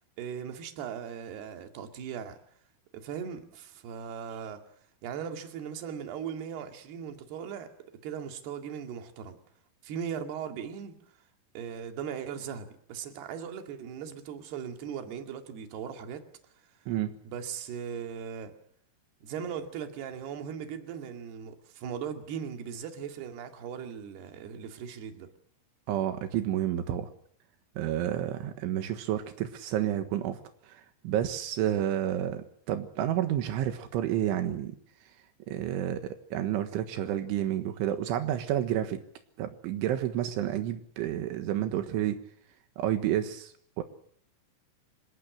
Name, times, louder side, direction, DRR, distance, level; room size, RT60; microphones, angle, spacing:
voice 1, 0.2-2.4 2.9-4.6 5.0-7.7 8.0-9.4 9.8-10.9 11.5-16.2 17.3-18.5 19.2-25.3, right 7 dB, 60° right, 5 dB, 4.1 m, -38 dB
voice 2, 25.9-27.1 27.8-34.8 35.5-39.0 39.4-42.2 42.8-43.8, right 11 dB, 85° right, 8 dB, 3.9 m, -30 dB
26.5 x 19.0 x 8.4 m, 0.64 s
omnidirectional pair, 5.5 m